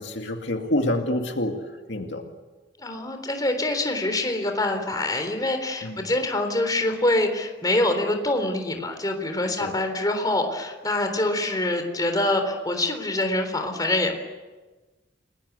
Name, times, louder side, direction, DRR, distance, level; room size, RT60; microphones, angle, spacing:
voice 1, 0.0-1.6 1.9-2.3 5.8-6.0 9.6-9.7, left 1 dB, 70° left, 4 dB, 2.3 m, -27 dB
voice 2, 2.8-14.1, left 1 dB, 20° left, 6 dB, 3.7 m, -25 dB
30.0 x 21.0 x 8.2 m, 1.3 s
head